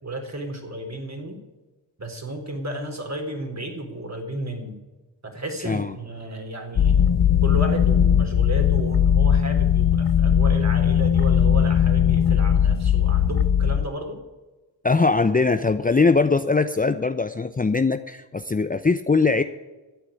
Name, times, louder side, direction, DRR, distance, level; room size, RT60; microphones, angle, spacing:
voice 1, 0.0-1.4 2.0-4.8 5.2-7.1 7.4-14.2, right 1 dB, 35° right, 4 dB, 4.0 m, -33 dB
sound 1, 6.8-13.9, left 9 dB, 55° left, 0.9 m, -19 dB
voice 2, 14.8-19.4, left 4 dB, 20° left, 9 dB, 0.7 m, -21 dB
12.5 x 8.2 x 9.9 m, 1.2 s
supercardioid pair, 50°, 45 cm